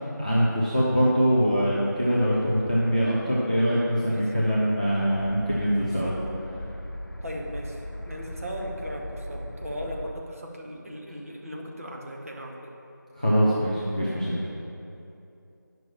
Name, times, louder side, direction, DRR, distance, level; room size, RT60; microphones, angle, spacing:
voice 1, 0.2-6.1 13.2-14.3, equal, 20° right, -8 dB, 0.6 m, -23 dB
voice 2, 4.1-4.6 5.8-6.2 7.2-12.8, equal, 45° right, -1 dB, 1.1 m, -38 dB
sound 1, 5.1-10.1, equal, 70° left, 0.7 m, -38 dB
10.0 x 6.0 x 4.4 m, 2.8 s
figure-of-eight pair, 175°, 11 cm